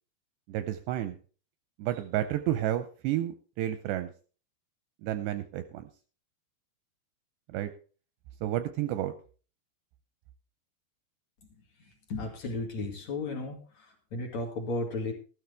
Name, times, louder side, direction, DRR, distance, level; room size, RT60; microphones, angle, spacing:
voice 1, 0.5-1.2 1.8-4.1 5.0-5.9 7.5-7.7 8.4-9.1, right 13 dB, 80° right, 10 dB, 2.5 m, -31 dB
voice 2, 12.1-15.1, left 2 dB, 45° left, 0 dB, 2.8 m, -34 dB
14.0 x 13.0 x 3.4 m, 0.37 s
omnidirectional pair, 5.5 m